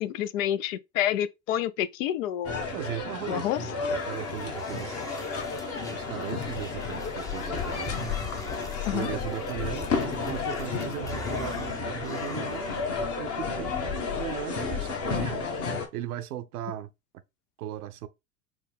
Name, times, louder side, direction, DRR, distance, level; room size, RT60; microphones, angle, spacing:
voice 1, 0.0-2.7 3.3-3.6 8.9-9.1, left 11 dB, 60° left, 0.5 m, -28 dB
sound 1, 2.4-15.9, left 5 dB, 30° left, 1.0 m, -32 dB
voice 2, 2.7-5.0 5.9-8.0 8.9-12.7 13.2-15.4 15.9-16.9 17.6-18.1, right 11 dB, 70° right, 0.6 m, -37 dB
sound 2, 3.3-13.3, left 1 dB, 10° left, 0.5 m, -43 dB
4.7 x 2.1 x 3.5 m
hypercardioid pair, 85°, 45 cm